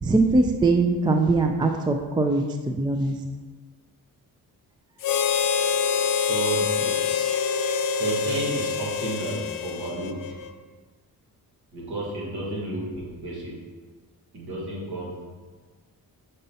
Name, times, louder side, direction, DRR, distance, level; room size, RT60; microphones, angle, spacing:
voice 1, 0.0-3.1, right 3 dB, 15° right, 4 dB, 0.3 m, -22 dB
Harmonica, 5.0-10.5, left 6 dB, 60° left, 0.5 m, -26 dB
voice 2, 6.3-7.0 8.0-10.4 11.7-13.6 14.3-15.2, right 2 dB, 90° right, -4 dB, 1.6 m, -31 dB
6.6 x 5.2 x 2.8 m, 1.4 s
cardioid pair, 95°, 38 cm